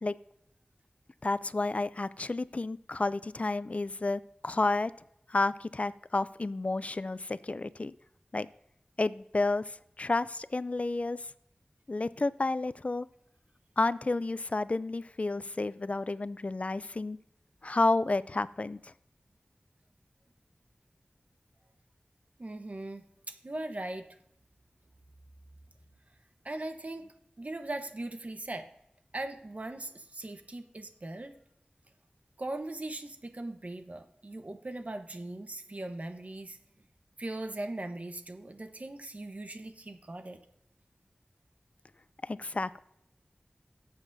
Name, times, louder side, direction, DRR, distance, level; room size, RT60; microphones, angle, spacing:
voice 1, 1.2-4.9 5.3-7.9 8.3-8.5 9.0-11.3 11.9-13.1 13.8-17.2 17.6-18.9 42.2-42.8, left 2 dB, 45° left, 16 dB, 0.4 m, -31 dB
voice 2, 22.4-24.0 26.4-28.7 29.1-31.4 32.4-36.6 37.2-40.4, right 2 dB, 50° right, 7 dB, 1.0 m, -39 dB
18.0 x 8.1 x 2.7 m, 0.78 s
wide cardioid pair, 60°, 3 cm